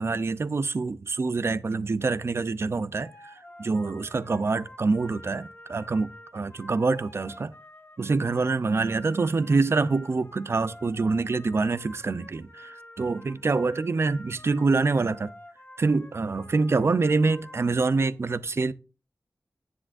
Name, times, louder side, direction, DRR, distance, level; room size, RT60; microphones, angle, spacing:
voice 1, 0.0-7.5 8.0-15.3 15.8-18.7, right 3 dB, 50° right, 0.5 m, -26 dB
sound 1, 3.0-18.1, left 1 dB, 40° left, 1.6 m, -49 dB
9.8 x 9.8 x 2.6 m
wide cardioid pair, 100°, 6 cm